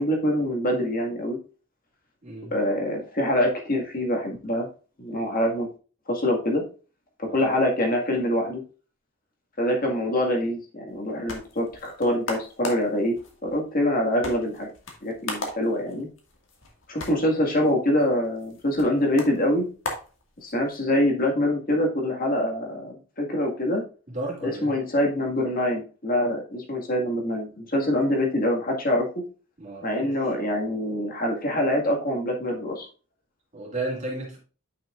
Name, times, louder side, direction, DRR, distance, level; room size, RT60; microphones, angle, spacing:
voice 1, 0.0-1.4 2.5-4.7 5.0-5.7 6.1-6.6 7.2-8.6 9.6-13.2 13.4-14.7 15.0-16.1 16.9-19.7 20.4-23.8 24.4-29.1 29.8-32.9, left 1 dB, 40° left, 1 dB, 1.8 m, -25 dB
sound 1, 10.9-20.8, left 2 dB, 60° left, 1.8 m, -39 dB
voice 2, 24.1-24.7 29.6-30.1 33.5-34.4, right 2 dB, 35° right, -3 dB, 2.4 m, -33 dB
9.2 x 6.1 x 2.5 m, 0.35 s
head